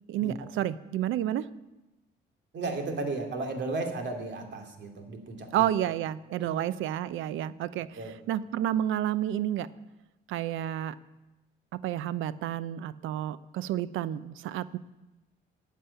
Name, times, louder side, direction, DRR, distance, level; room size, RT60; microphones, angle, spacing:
voice 1, 0.1-1.5 5.5-8.0 8.3-9.7 10.3-11.0 11.7-14.8, right 11 dB, 85° right, 16 dB, 0.6 m, -30 dB
voice 2, 2.5-5.7 6.3-6.6 7.9-8.1, right 3 dB, 65° right, 4 dB, 2.8 m, -35 dB
12.5 x 7.5 x 9.8 m, 1.0 s
cardioid pair, 90°, 20 cm